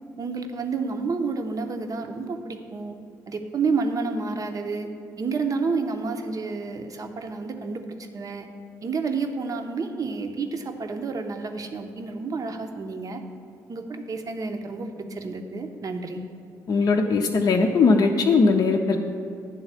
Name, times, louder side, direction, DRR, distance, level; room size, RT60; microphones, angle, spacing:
voice 1, 0.2-2.9 3.3-4.9 5.2-8.5 8.8-13.2 13.7-16.2, right 4 dB, 35° right, 6 dB, 0.7 m, -30 dB
voice 2, 16.7-19.1, left 4 dB, 40° left, 2 dB, 0.6 m, -20 dB
9.8 x 3.9 x 6.9 m, 2.6 s
figure-of-eight pair, 45°, 10 cm